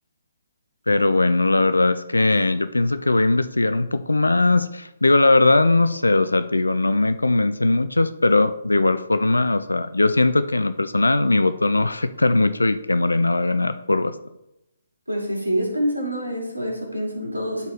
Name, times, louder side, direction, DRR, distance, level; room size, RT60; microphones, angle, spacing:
voice 1, 0.9-14.1, left 2 dB, 80° left, 12 dB, 0.4 m, -19 dB
voice 2, 15.1-17.7, equal, 90° right, -1 dB, 2.5 m, -26 dB
12.0 x 4.2 x 3.4 m, 0.90 s
figure-of-eight pair, 135°, 0 cm